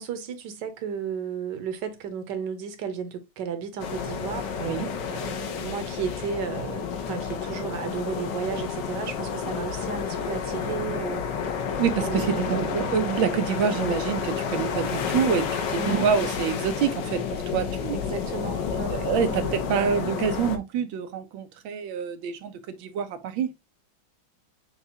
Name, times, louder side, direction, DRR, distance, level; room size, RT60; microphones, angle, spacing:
voice 1, 0.0-4.5 5.1-11.3 12.0-12.8 15.8-16.1 17.9-19.6, right 6 dB, 70° right, 1.4 m, -33 dB
sound 1, 3.8-20.6, left 6 dB, 70° left, 1.4 m, -30 dB
voice 2, 11.8-18.0 18.9-23.5, right 7 dB, 90° right, 1.5 m, -27 dB
6.7 x 2.4 x 2.7 m
omnidirectional pair, 2.1 m